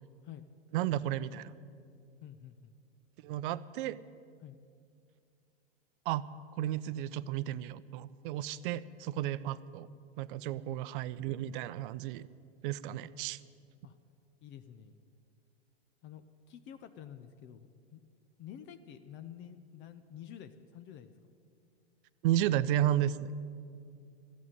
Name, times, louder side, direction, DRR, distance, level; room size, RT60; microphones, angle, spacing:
voice 1, 0.7-1.5 3.2-4.0 6.1-6.2 6.6-9.9 10.2-12.3 12.6-13.4 22.2-23.3, right 12 dB, 55° right, 16 dB, 0.6 m, -33 dB
voice 2, 2.2-2.7 4.4-4.6 10.4-10.6 13.0-13.1 13.8-14.0 14.4-15.0 16.0-18.0 18.4-21.3, left 9 dB, 35° left, 10 dB, 0.7 m, -49 dB
13.5 x 8.4 x 9.1 m, 2.4 s
hypercardioid pair, 100°, 32 cm